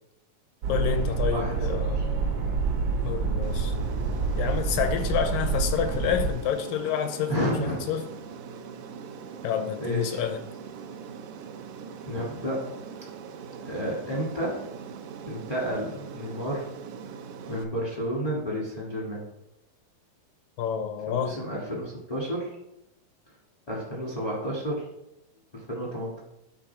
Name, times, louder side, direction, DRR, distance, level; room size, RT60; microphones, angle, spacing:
sound 1, 0.6-6.3, right 4 dB, 65° right, 1.7 m, -27 dB
voice 1, 0.7-2.0 3.0-3.7 4.4-8.1 9.4-10.4 20.6-21.4, left 9 dB, 80° left, 8 dB, 2.2 m, -28 dB
voice 2, 1.3-2.0 7.3-7.8 9.8-10.2 12.1-12.6 13.6-14.6 15.3-16.6 17.5-19.2 21.1-22.5 23.7-24.8 25.5-26.2, equal, 30° left, -4 dB, 0.7 m, -31 dB
Aircraft, 3.4-17.6, right 6 dB, 85° right, 1.8 m, -41 dB
11.0 x 3.7 x 4.5 m, 0.84 s
omnidirectional pair, 4.0 m